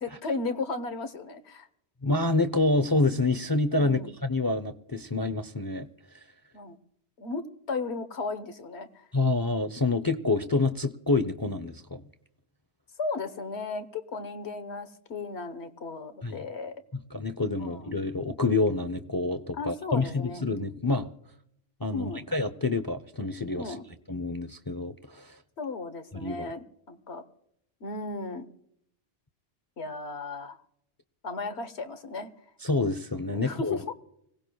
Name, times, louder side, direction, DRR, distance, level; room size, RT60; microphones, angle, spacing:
voice 1, 0.0-1.7 3.7-4.1 6.5-6.8 7.2-9.1 13.0-16.7 17.6-17.9 19.5-20.4 21.9-22.3 23.6-23.9 25.6-27.2 27.8-28.5 29.8-30.6 31.2-32.3 33.3-33.9, left 3 dB, 85° left, 10 dB, 1.5 m, -35 dB
voice 2, 2.0-5.9 9.1-12.0 16.2-16.4 16.9-21.1 21.8-23.8 24.1-25.4 26.1-26.5 32.6-33.8, left 3 dB, 25° left, 10 dB, 0.5 m, -27 dB
26.0 x 17.5 x 2.3 m, 0.73 s
omnidirectional pair, 1.1 m